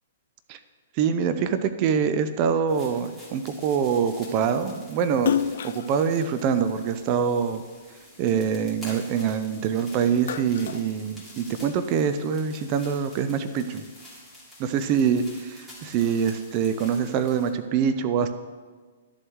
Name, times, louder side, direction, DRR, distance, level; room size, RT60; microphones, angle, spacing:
voice 1, 0.9-5.3 5.6-7.6 8.2-13.8 14.6-18.3, right 7 dB, 40° right, 10 dB, 0.6 m, -25 dB
sound 1, 2.7-17.5, left 1 dB, 5° right, 3.2 m, -48 dB
Splash splatter, 5.2-7.7 8.2-9.6 10.0-11.7, left 9 dB, 65° left, 0.4 m, -31 dB
12.5 x 7.7 x 3.1 m, 1.4 s
hypercardioid pair, 125°, 0 cm